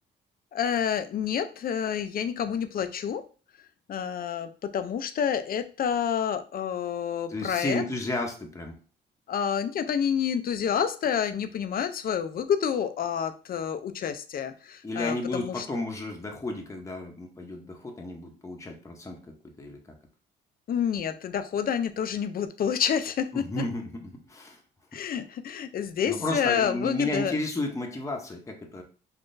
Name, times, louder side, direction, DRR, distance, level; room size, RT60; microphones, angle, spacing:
voice 1, 0.5-3.2 3.9-7.8 9.3-15.7 20.7-23.6 24.9-27.4, left 8 dB, 50° left, 10 dB, 0.4 m, -28 dB
voice 2, 7.3-8.8 14.8-19.9 23.3-24.6 26.0-28.8, left 2 dB, 15° left, 2 dB, 0.7 m, -33 dB
3.7 x 2.4 x 2.5 m, 0.37 s
cardioid pair, 90°, 20 cm